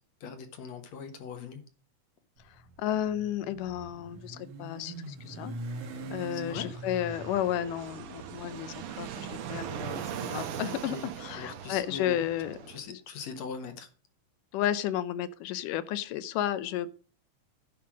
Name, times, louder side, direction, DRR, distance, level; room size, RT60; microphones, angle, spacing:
voice 1, 0.2-1.6 6.3-6.7 10.9-11.1 11.4-12.2 12.7-13.9, left 6 dB, 60° left, 2.2 m, -41 dB
Motorcycle, 2.4-10.6, right 2 dB, 55° right, 2.1 m, -44 dB
voice 2, 2.8-5.5 6.1-12.6 12.9-13.0 14.5-16.9, left 11 dB, 80° left, 2.2 m, -32 dB
Fixed-wing aircraft airplane, 6.0-12.8, right 8 dB, 85° right, 2.9 m, -40 dB
10.5 x 5.7 x 6.2 m
omnidirectional pair, 3.9 m